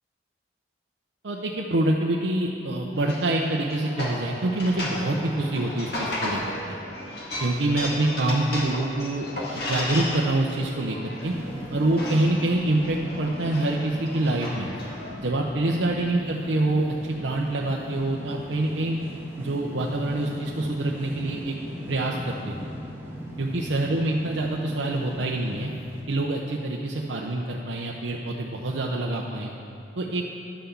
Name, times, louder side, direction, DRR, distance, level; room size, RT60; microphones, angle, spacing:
voice 1, 1.2-6.4 6.7-6.8 7.4-11.0 11.2-11.3 11.7-14.7 15.2-19.0 19.4-21.5 21.9-22.7 23.4-25.7 26.1-29.5 30.0-30.2, right 2 dB, 90° right, -1 dB, 0.7 m, -26 dB
sound 1, 2.9-15.1, left 1 dB, 60° left, 1.9 m, -35 dB
sound 2, 11.2-26.0, equal, 15° right, 1.5 m, -38 dB
11.5 x 5.8 x 6.9 m, 2.6 s
head